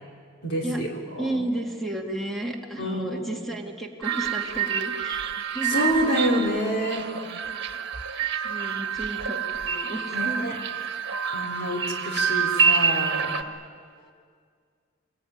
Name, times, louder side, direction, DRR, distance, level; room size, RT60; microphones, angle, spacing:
voice 1, 0.4-0.9 1.3-1.4 2.8-3.2 5.7-7.1 10.1-10.5 11.3-13.3, equal, 55° left, 0 dB, 4.5 m, -27 dB
voice 2, 1.2-5.9 7.5-7.8 8.4-10.6 14.0-14.1, right 1 dB, ahead, 1 dB, 2.6 m, -33 dB
sound 1, 4.0-13.4, right 6 dB, 60° right, 1.5 m, -27 dB
25.5 x 20.5 x 9.7 m, 2.1 s
head